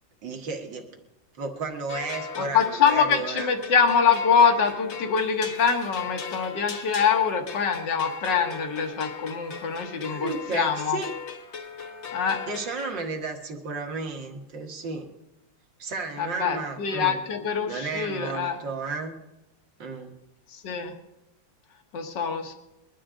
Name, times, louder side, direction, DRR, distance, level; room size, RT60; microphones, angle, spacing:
voice 1, 0.2-1.0 1.4-3.5 10.1-11.1 12.5-15.1 15.8-17.2 17.7-19.2 19.8-20.1, right 4 dB, 70° right, 3 dB, 2.5 m, -33 dB
sound 1, 1.9-13.0, left 6 dB, 45° left, 1.1 m, -38 dB
voice 2, 2.4-11.0 12.1-12.4 16.2-18.6 20.5-20.9 21.9-22.5, left 6 dB, 65° left, 4 dB, 2.1 m, -24 dB
22.0 x 12.0 x 3.8 m, 0.90 s
omnidirectional pair, 2.1 m